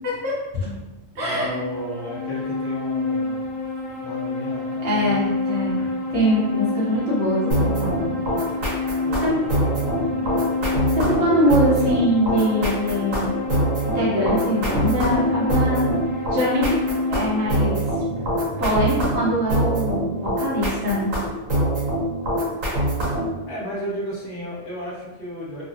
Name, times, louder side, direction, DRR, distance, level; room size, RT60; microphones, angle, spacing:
voice 1, 0.0-0.8 1.1-1.5 4.8-8.1 9.2-9.4 11.0-13.3 13.9-15.9 16.3-16.8 17.1-17.8 18.1-21.1, equal, 60° right, -6 dB, 1.2 m, -23 dB
voice 2, 1.2-3.4 4.0-5.2 9.0-10.3 23.5-25.6, equal, 50° left, -7 dB, 1.0 m, -33 dB
sound 1, 1.3-17.6, left 3 dB, 85° left, 1.2 m, -28 dB
sound 2, 7.5-23.4, right 1 dB, 85° right, 1.4 m, -24 dB
3.1 x 2.3 x 2.7 m, 1.1 s
omnidirectional pair, 1.3 m